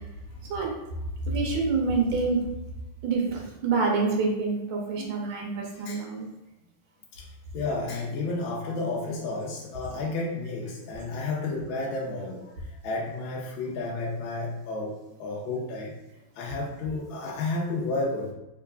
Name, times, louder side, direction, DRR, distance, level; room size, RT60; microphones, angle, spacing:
voice 1, 1.3-2.4 3.0-6.3, right 4 dB, 70° right, -1 dB, 1.5 m, -26 dB
voice 2, 5.7-6.0 7.1-7.2 7.5-12.4 12.8-14.9 15.2-15.9 16.4-18.3, left 3 dB, 75° left, -3 dB, 1.3 m, -31 dB
3.6 x 3.3 x 2.3 m, 0.97 s
omnidirectional pair, 2.4 m